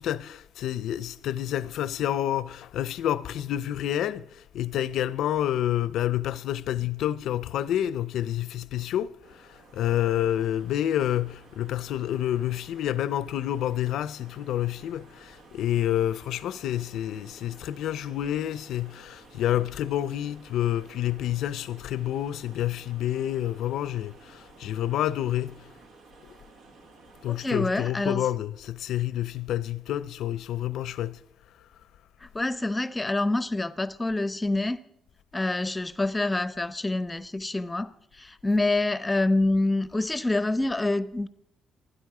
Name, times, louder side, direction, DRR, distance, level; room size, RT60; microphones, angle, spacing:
voice 1, 0.0-25.6 27.2-31.2, left 12 dB, 80° left, 0.5 m, -28 dB
sound 1, 9.2-27.5, right 3 dB, 75° right, 1.6 m, -54 dB
voice 2, 27.3-28.2 32.2-34.8 35.3-41.3, left 2 dB, 15° left, 0.7 m, -26 dB
28.0 x 10.0 x 4.9 m
cardioid pair, 90°, 0 cm